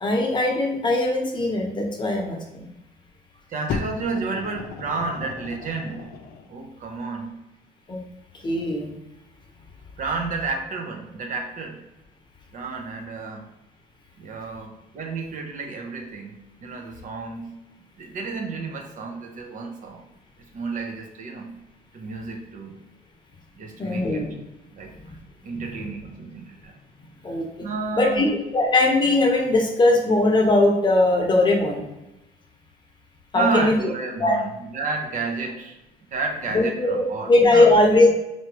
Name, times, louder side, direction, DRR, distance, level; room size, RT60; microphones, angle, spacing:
voice 1, 0.0-2.7 7.9-8.0 8.4-8.9 23.8-24.3 25.5-25.6 27.2-27.5 27.9-31.8 33.3-33.8 34.2-34.4 36.5-38.1, left 2 dB, 25° left, 1 dB, 1.0 m, -20 dB
voice 2, 3.5-6.1 6.5-7.3 8.6-8.7 10.0-11.8 12.5-13.5 14.2-17.6 18.0-20.0 20.5-21.6 21.9-22.7 23.5-24.3 24.7-24.9 25.4-26.8 27.6-28.3 33.3-35.8 36.1-37.7, right 4 dB, 50° right, 2 dB, 0.9 m, -31 dB
Fire, 3.7-6.5 7.3-7.4, left 5 dB, 65° left, 0.5 m, -34 dB
4.7 x 2.8 x 3.0 m, 0.96 s
cardioid pair, 110°, 17 cm